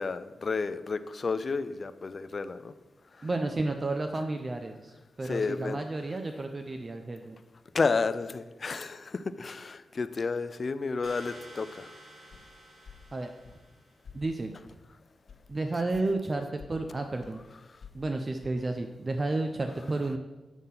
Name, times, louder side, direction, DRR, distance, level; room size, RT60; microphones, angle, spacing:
voice 1, 0.0-2.7 3.2-3.3 5.2-5.8 7.7-11.9, left 4 dB, 50° left, 13 dB, 0.4 m, -31 dB
voice 2, 3.2-4.9 5.2-7.4 13.1-13.3 14.1-14.5 15.5-17.4 17.9-20.2, right 2 dB, 40° right, 5 dB, 0.5 m, -31 dB
sound 1, 11.0-13.9, right 1 dB, 65° right, 2.6 m, -51 dB
sound 2, 12.3-12.5 12.8-13.0 13.4-13.6 14.0-14.2 14.6-14.8 15.3-15.4 15.9-16.1 16.4-16.7 17.2-17.4 17.8-18.1 18.4-18.5, left 6 dB, 70° left, 1.5 m, -49 dB
8.1 x 3.7 x 5.8 m, 1.1 s
cardioid pair, 60°, 0 cm